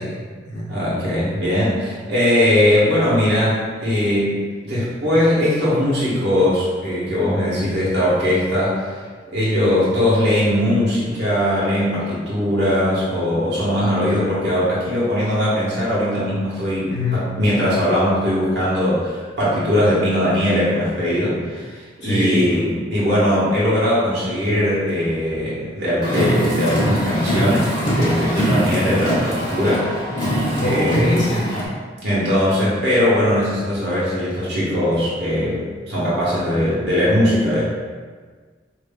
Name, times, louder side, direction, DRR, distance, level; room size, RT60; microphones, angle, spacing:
voice 1, 0.0-0.8 16.9-17.2 22.0-22.5 30.6-31.7, left 1 dB, 65° left, -7 dB, 1.0 m, -24 dB
voice 2, 0.7-4.4 4.6-8.9 9.3-29.9 30.6-31.2 32.0-37.6, left 1 dB, 65° right, -9 dB, 1.3 m, -20 dB
Car, 26.0-31.7, equal, 30° left, 1.5 m, -22 dB
5.3 x 2.9 x 2.3 m, 1.5 s
head